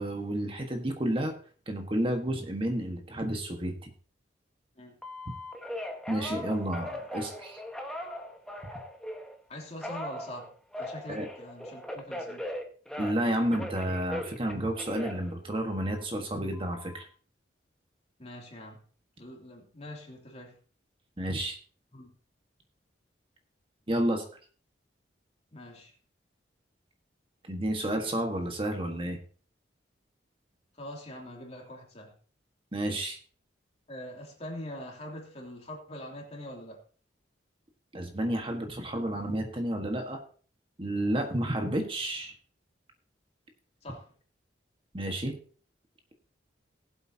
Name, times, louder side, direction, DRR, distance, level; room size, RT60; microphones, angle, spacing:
voice 1, 0.0-1.4 1.7-3.9 6.1-7.6 11.1-11.3 13.0-17.1 21.2-21.6 23.9-24.2 27.5-29.2 32.7-33.2 37.9-40.2 40.8-42.3 44.9-45.4, right 1 dB, 30° right, 1.4 m, -31 dB
Telephone, 5.0-9.3 9.8-13.3 13.5-16.0 16.5-17.0, left 1 dB, 5° left, 1.4 m, -39 dB
voice 2, 9.5-10.5 10.8-12.5 18.2-18.8 19.2-20.6 21.9-22.1 25.5-25.9 30.7-32.1 33.9-36.8 43.8-44.1, left 1 dB, 35° left, 2.8 m, -43 dB
19.5 x 8.0 x 2.8 m
head